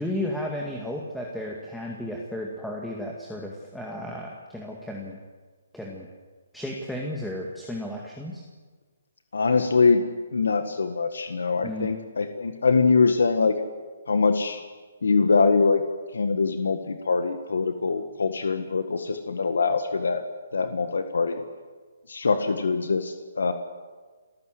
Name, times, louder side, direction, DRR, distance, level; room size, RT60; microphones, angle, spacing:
voice 1, 0.0-5.2 5.7-6.1 6.5-8.4 11.6-11.9, left 1 dB, ahead, -2 dB, 2.0 m, -33 dB
voice 2, 9.3-10.0 10.3-13.6 14.1-14.6 15.0-15.8 16.1-20.2 20.5-21.4 22.1-23.5, left 4 dB, 80° left, 8 dB, 1.6 m, -23 dB
28.5 x 14.5 x 7.8 m, 1.4 s
hypercardioid pair, 145°, 0 cm